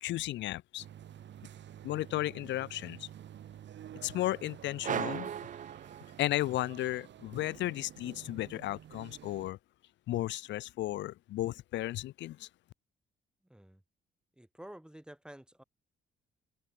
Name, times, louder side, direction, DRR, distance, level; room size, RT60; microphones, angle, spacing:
voice 1, 0.0-0.9 1.8-3.1 4.0-5.3 6.2-9.6 10.1-12.5, left 15 dB, 65° left, 0.4 m, -34 dB
sound 1, 0.8-9.5, right 10 dB, 65° right, 2.0 m, -50 dB
sound 2, 4.8-6.6, right 9 dB, 40° right, 0.5 m, -37 dB
voice 2, 13.4-13.8 14.4-15.6, right 1 dB, 5° right, 1.9 m, -51 dB
open air
cardioid pair, 90°, 20 cm